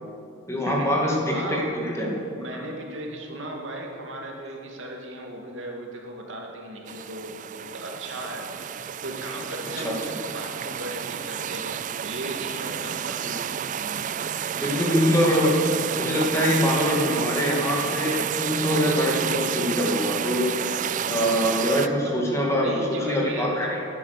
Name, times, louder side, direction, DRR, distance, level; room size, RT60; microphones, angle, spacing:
voice 1, 0.5-2.2 9.8-9.9 14.6-20.5 21.1-23.8, equal, 15° left, -2 dB, 2.4 m, -24 dB
voice 2, 1.3-1.7 2.4-10.0 10.3-13.7 22.0-23.8, right 1 dB, 65° right, 0 dB, 2.6 m, -36 dB
sound 1, 6.9-21.9, right 8 dB, 40° right, 0.3 m, -30 dB
19.0 x 10.5 x 6.8 m, 2.7 s
head